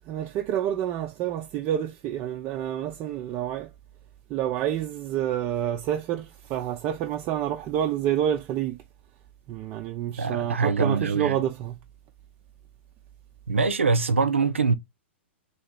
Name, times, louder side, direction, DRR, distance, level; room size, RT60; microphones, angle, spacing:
voice 1, 0.1-3.7 4.3-8.8 9.5-11.7, right 11 dB, 35° right, 0.5 m, -28 dB
voice 2, 10.2-11.4 13.5-14.7, right 4 dB, 90° right, 0.6 m, -23 dB
3.1 x 2.8 x 4.5 m
hypercardioid pair, 115°, 7 cm